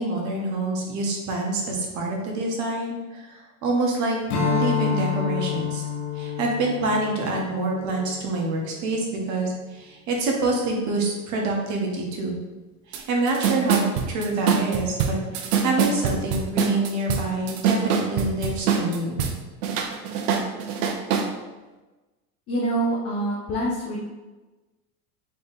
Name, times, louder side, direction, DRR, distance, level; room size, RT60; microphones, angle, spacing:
voice 1, 0.0-5.9 6.1-12.4 12.9-19.3, right 2 dB, 40° right, 0 dB, 1.1 m, -26 dB
Strum, 4.3-9.0, left 7 dB, 75° left, 1.2 m, -28 dB
sound 1, 12.9-13.0 13.3-19.3 19.6-21.3, right 7 dB, 65° right, 0.8 m, -24 dB
voice 2, 22.5-24.0, right 1 dB, 30° left, -4 dB, 0.8 m, -25 dB
4.0 x 3.3 x 3.5 m, 1.2 s
supercardioid pair, 135°, 45 cm